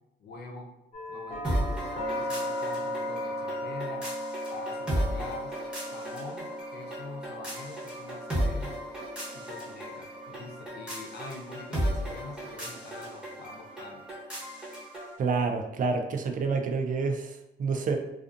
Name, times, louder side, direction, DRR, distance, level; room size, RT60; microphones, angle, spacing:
voice 1, 0.2-0.7 1.1-4.1 4.5-5.6 5.9-8.8 9.3-14.0, left 3 dB, 55° left, 1 dB, 0.6 m, -44 dB
sound 1, 0.9-14.8, left 1 dB, 35° left, 1.0 m, -38 dB
sound 2, 1.4-15.2, equal, 5° right, 1.1 m, -35 dB
voice 2, 15.2-18.0, right 4 dB, 40° right, 4 dB, 0.4 m, -28 dB
2.4 x 2.4 x 2.5 m, 0.92 s
cardioid pair, 90°, 20 cm